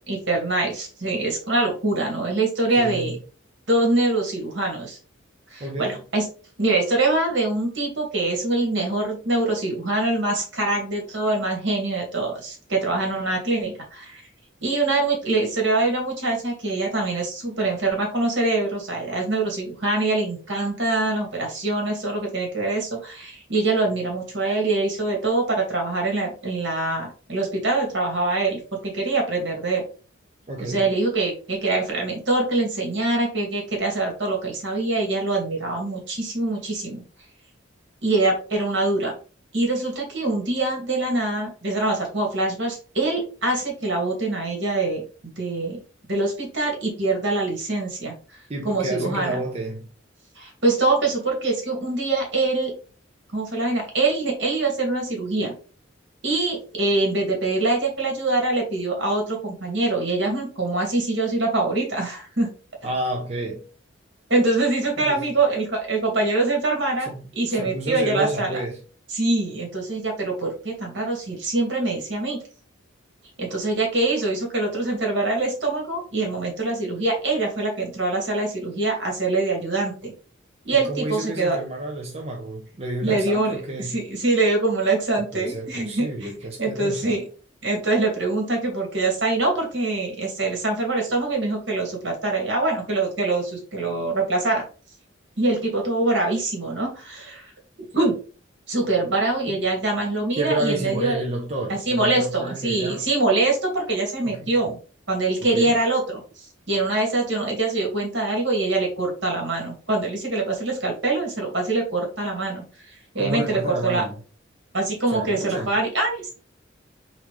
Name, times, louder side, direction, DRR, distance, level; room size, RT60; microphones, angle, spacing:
voice 1, 0.1-3.2 3.7-5.0 5.5-6.3 6.6-14.2 14.6-29.8 30.6-37.0 38.0-39.1 39.5-45.0 45.4-45.8 46.1-49.4 50.4-52.7 53.3-55.5 56.2-62.5 64.3-68.6 69.1-72.4 73.4-80.1 80.7-81.6 83.0-86.3 86.6-87.2 87.6-94.6 95.4-97.5 97.9-98.2 98.7-101.2 101.7-104.8 105.1-114.0 114.7-116.3, right 2 dB, 65° right, 1.9 m, -24 dB
voice 2, 2.8-3.2 5.6-6.0 30.5-30.9 48.5-49.9 62.8-63.7 65.0-65.2 67.1-67.2 67.5-68.8 80.7-84.0 85.3-87.2 100.4-103.1 104.2-104.5 105.5-105.8 113.2-114.1 115.1-115.7, right 2 dB, 35° right, 0.7 m, -30 dB
4.3 x 3.6 x 3.1 m
head